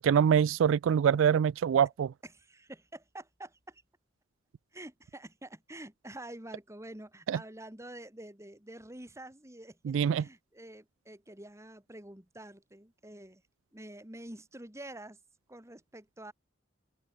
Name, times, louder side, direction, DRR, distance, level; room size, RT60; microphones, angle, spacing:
voice 1, 0.0-2.1 7.3-7.4 9.9-10.2, right 8 dB, 80° right, 0.3 m, -24 dB
voice 2, 2.2-3.8 4.7-13.4 13.7-15.2 15.5-16.3, right 1 dB, 15° right, 2.8 m, -47 dB
open air
head